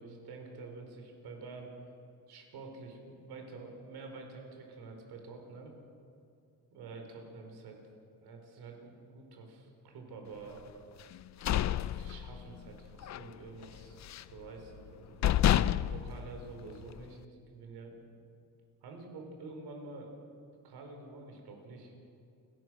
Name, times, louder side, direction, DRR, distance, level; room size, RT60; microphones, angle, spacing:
voice 1, 0.0-1.7 2.3-5.7 6.7-7.8 8.2-10.6 11.5-15.2 15.8-18.0 18.8-20.1 20.6-21.9, right 3 dB, 80° right, 3 dB, 4.7 m, -48 dB
sound 1, 11.1-12.7 13.0-13.3 13.6-14.4 14.9-15.0 15.2-17.0, left 11 dB, 45° left, 0.6 m, -29 dB
29.0 x 16.0 x 6.4 m, 2.5 s
cardioid pair, 125°, 38 cm